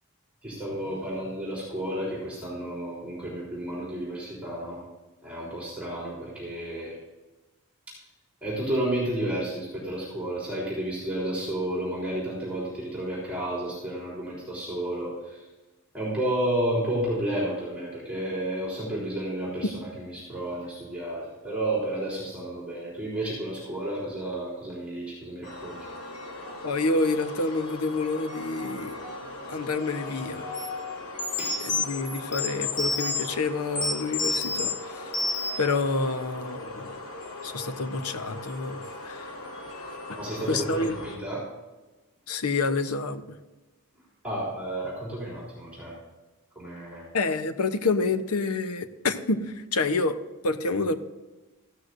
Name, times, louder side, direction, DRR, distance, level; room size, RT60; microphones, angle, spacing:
voice 1, 0.4-4.8 5.2-6.9 8.4-15.4 15.9-25.8 31.4-31.6 40.2-41.4 44.2-46.0 46.6-47.1, right 1 dB, 5° right, -7 dB, 3.7 m, -31 dB
sound 1, 25.4-41.2, left 2 dB, 70° left, 2.4 m, -39 dB
voice 2, 26.6-29.0 29.5-30.5 31.6-35.2 35.6-37.0 37.4-39.3 40.5-41.0 42.3-43.2 47.1-50.2 50.4-51.0, left 3 dB, 90° left, 10 dB, 0.9 m, -28 dB
sound 2, 30.5-30.7 31.2-33.3 33.8-34.7 35.1-35.7, left 3 dB, 50° left, 1.4 m, -29 dB
15.0 x 12.5 x 2.6 m, 1.1 s
head